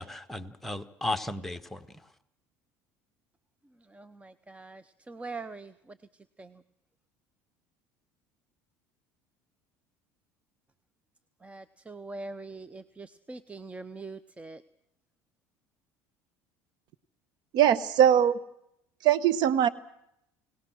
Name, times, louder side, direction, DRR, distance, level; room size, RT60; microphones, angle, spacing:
voice 1, 0.0-2.1, left 2 dB, 5° left, 9 dB, 1.7 m, -35 dB
voice 2, 3.8-6.6 11.4-14.6, right 3 dB, 15° right, 15 dB, 0.9 m, -43 dB
voice 3, 17.5-18.4 19.0-19.7, right 10 dB, 60° right, 16 dB, 1.2 m, -21 dB
29.5 x 18.5 x 6.3 m, 0.76 s
supercardioid pair, 90°, 8 cm